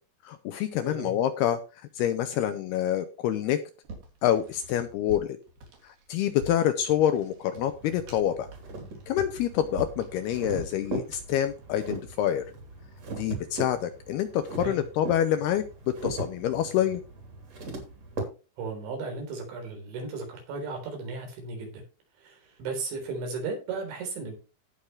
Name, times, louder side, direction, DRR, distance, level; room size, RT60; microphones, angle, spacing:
voice 1, 0.2-1.6 2.0-3.6 4.2-5.4 5.8-8.5 9.1-12.4 13.2-17.0, left 11 dB, 75° left, 9 dB, 2.4 m, -27 dB
voice 2, 0.8-1.1 14.6-14.8 18.6-21.8 22.2-24.4, right 4 dB, 75° right, 3 dB, 6.1 m, -35 dB
sound 1, 3.8-11.5, right 1 dB, 55° right, 4.8 m, -47 dB
sound 2, 7.5-18.2, right 2 dB, 35° right, 3.7 m, -39 dB
17.0 x 6.5 x 3.2 m, 0.32 s
omnidirectional pair, 5.3 m